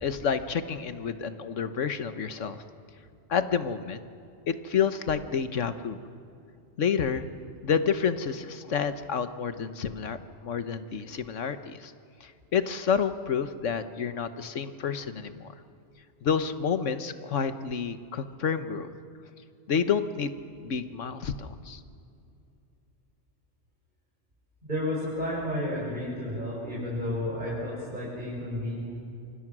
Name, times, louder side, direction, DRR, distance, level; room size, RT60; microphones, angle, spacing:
voice 1, 0.0-2.6 3.3-4.0 4.5-6.0 6.8-7.3 7.6-11.9 12.2-15.5 16.2-18.9 19.7-21.8, left 6 dB, 90° left, 10 dB, 1.5 m, -29 dB
voice 2, 24.6-28.8, left 1 dB, 40° right, -7 dB, 6.7 m, -32 dB
28.0 x 25.0 x 6.2 m, 2.6 s
omnidirectional pair, 1.2 m